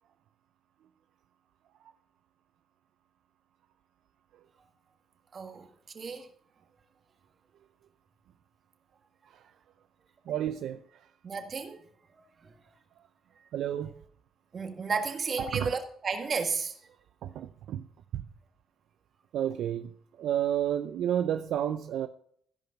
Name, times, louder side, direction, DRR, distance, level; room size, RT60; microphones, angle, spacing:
voice 1, 5.3-5.7 5.9-6.3 11.2-11.8 12.1-12.6 14.5-16.8, right 5 dB, 45° right, 1.8 m, -33 dB
voice 2, 10.3-11.1 13.5-14.0 15.4-15.7 17.2-17.9 18.1-18.3 19.3-19.9 20.2-22.1, right 10 dB, 80° right, 0.5 m, -31 dB
15.5 x 5.3 x 5.8 m
cardioid pair, 90°, 0 cm